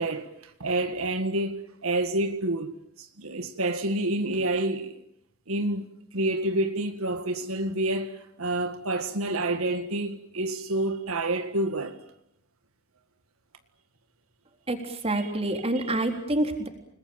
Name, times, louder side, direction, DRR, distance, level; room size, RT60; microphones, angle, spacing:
voice 1, 0.0-4.9 5.5-12.0 15.1-16.0, right 2 dB, 75° right, 1.8 m, -29 dB
voice 2, 14.7-16.7, right 1 dB, 30° right, 3.9 m, -27 dB
29.5 x 20.5 x 9.1 m
head